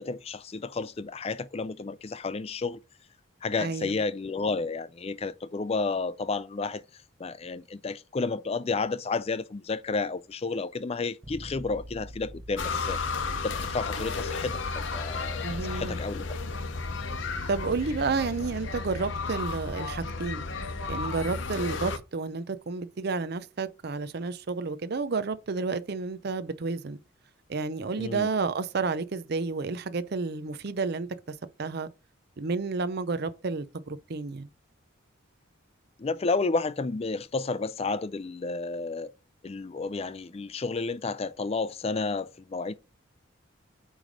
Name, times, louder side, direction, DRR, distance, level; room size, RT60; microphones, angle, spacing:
voice 1, 0.0-2.8 3.4-6.8 7.2-13.0 13.4-15.4 15.7-16.2 28.0-28.3 36.0-39.1 39.4-42.7, left 3 dB, 30° left, 0.4 m, -31 dB
voice 2, 3.6-4.0 15.4-16.0 17.5-20.5 20.9-27.0 27.5-31.1 31.6-31.9 32.4-34.5, right 4 dB, 50° right, 0.5 m, -31 dB
Bass guitar, 11.2-21.1, equal, 20° right, 1.0 m, -49 dB
sound 1, 12.6-22.0, left 4 dB, 60° left, 0.8 m, -33 dB
8.9 x 3.2 x 5.0 m
head